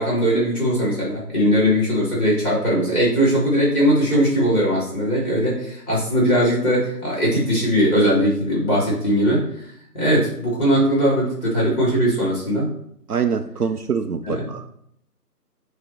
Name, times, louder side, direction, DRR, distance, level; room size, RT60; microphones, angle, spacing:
voice 1, 0.0-9.5 9.9-12.7 14.2-14.7, equal, 5° right, 3.2 m, -20 dB
voice 2, 13.1-14.6, right 6 dB, 70° right, 0.6 m, -24 dB
9.7 x 3.3 x 4.6 m
figure-of-eight pair, 165°, 48 cm